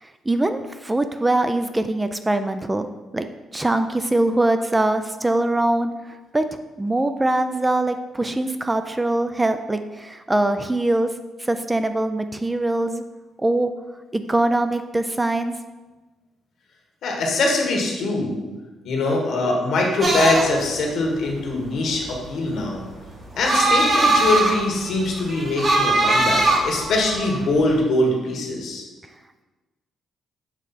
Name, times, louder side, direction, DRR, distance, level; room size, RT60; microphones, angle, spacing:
voice 1, 0.0-2.9 3.1-3.3 3.5-6.4 6.8-11.1 11.4-13.0 13.4-13.7 14.1-15.6, right 2 dB, 15° right, 9 dB, 0.3 m, -22 dB
voice 2, 17.0-18.4 18.8-22.8 23.4-28.8, left 2 dB, 70° left, 0 dB, 1.4 m, -22 dB
sound 1, 20.0-27.7, right 2 dB, 40° right, 1.2 m, -21 dB
7.3 x 3.2 x 4.1 m, 1.2 s
cardioid pair, 90°, 0 cm